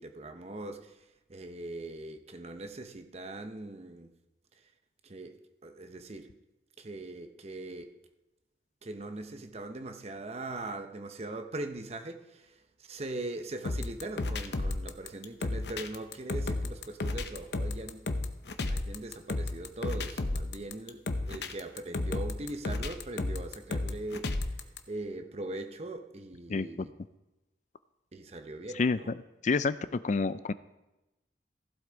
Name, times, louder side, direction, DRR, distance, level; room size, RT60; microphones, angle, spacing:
voice 1, 0.0-4.1 5.0-6.4 6.8-7.9 8.8-18.1 18.7-26.9 28.1-29.2, right 2 dB, 35° right, 0.8 m, -41 dB
sound 1, 13.6-24.8, left 2 dB, 70° left, 0.8 m, -33 dB
voice 2, 29.4-30.5, left 4 dB, 45° left, 0.4 m, -28 dB
15.0 x 8.1 x 4.0 m
head